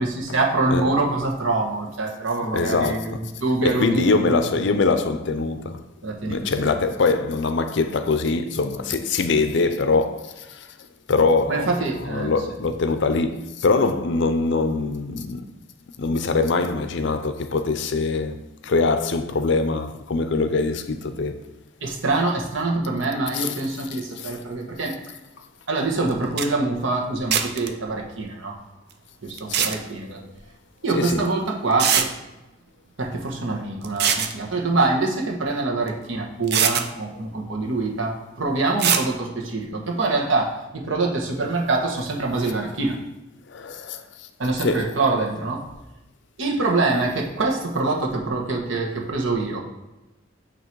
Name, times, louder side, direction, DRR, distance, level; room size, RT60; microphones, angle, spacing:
voice 1, 0.0-4.4 6.0-6.7 11.5-12.3 21.8-24.9 25.7-28.5 29.2-30.2 30.8-32.1 33.0-42.9 44.4-45.6 46.4-49.6, right 3 dB, 80° right, 1.2 m, -25 dB
voice 2, 2.5-3.2 3.6-5.8 6.3-10.7 11.1-15.4 16.0-21.4 23.3-23.5 23.9-24.3 29.5-29.8 30.9-31.3 43.5-44.3 44.6-44.9, left 3 dB, 65° left, 0.5 m, -23 dB
sound 1, 26.1-26.2 26.4-26.5 27.3-27.7 29.4-29.8 31.1-31.2 31.8-32.1 33.8-34.3 35.9-36.0 36.5-36.9 38.8-39.1, right 8 dB, 55° right, 0.5 m, -21 dB
8.5 x 3.0 x 4.6 m
head